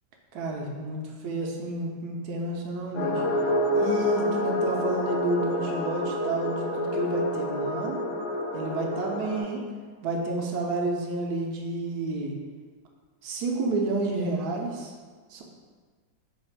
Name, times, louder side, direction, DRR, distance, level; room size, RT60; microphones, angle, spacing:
voice 1, 0.3-3.2 3.7-8.0 8.5-9.6 10.0-12.4 13.2-14.9 15.3-15.4, right 2 dB, 70° right, 1 dB, 0.9 m, -30 dB
sound 1, 2.9-9.4, left 1 dB, 65° left, 1.0 m, -28 dB
4.1 x 2.4 x 4.4 m, 1.5 s
omnidirectional pair, 2.0 m